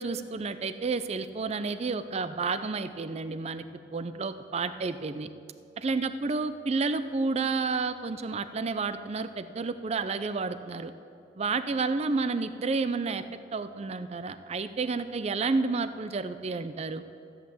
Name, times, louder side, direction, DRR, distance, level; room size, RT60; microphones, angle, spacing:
voice 1, 0.0-3.6 3.9-5.3 5.8-10.9 11.4-13.2 13.5-17.0, right 4 dB, 35° right, 12 dB, 0.4 m, -30 dB
14.0 x 8.2 x 7.1 m, 2.6 s
head